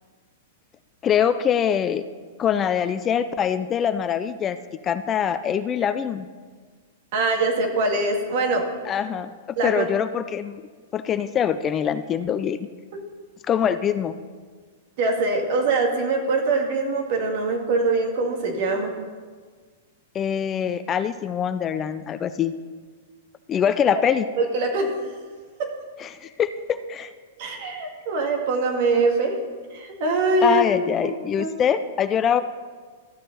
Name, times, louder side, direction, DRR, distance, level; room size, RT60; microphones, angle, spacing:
voice 1, 1.0-2.0 2.4-4.6 4.8-6.3 8.9-9.3 9.6-10.6 10.9-12.7 13.5-14.1 20.1-22.5 23.5-24.3 26.0-27.1 30.4-32.4, left 8 dB, 25° left, 11 dB, 0.4 m, -23 dB
voice 2, 7.1-8.7 9.6-9.8 15.0-18.9 24.4-24.9 25.6-25.7 27.4-29.3 29.7-30.6 31.4-31.5, right 3 dB, 55° right, 2 dB, 2.0 m, -23 dB
13.5 x 6.5 x 4.0 m, 1.5 s
hypercardioid pair, 125°, 0 cm